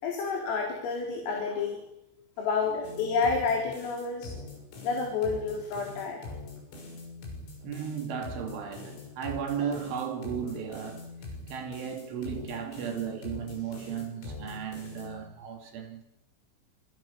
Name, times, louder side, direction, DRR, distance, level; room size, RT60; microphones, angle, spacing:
voice 1, 0.0-1.8 2.4-4.3 4.8-6.2, left 4 dB, 90° left, 6.6 m, -29 dB
sound 1, 2.8-15.2, left 3 dB, 70° left, 8.8 m, -43 dB
voice 2, 7.6-11.1 11.5-16.0, right 7 dB, 70° right, 4.8 m, -35 dB
28.0 x 26.5 x 7.0 m
omnidirectional pair, 5.7 m